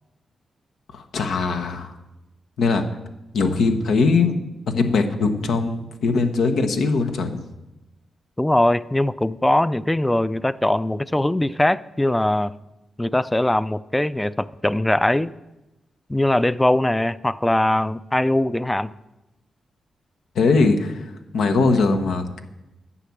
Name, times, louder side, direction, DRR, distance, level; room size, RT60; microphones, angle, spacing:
voice 1, 0.9-1.9 2.6-2.8 3.3-4.3 4.7-7.4 20.3-22.4, left 4 dB, 85° left, 6 dB, 1.1 m, -21 dB
voice 2, 8.4-12.5 13.0-15.3 16.1-18.9, left 1 dB, 10° left, 17 dB, 0.4 m, -21 dB
10.0 x 5.8 x 8.6 m, 0.98 s
cardioid pair, 65°, 0 cm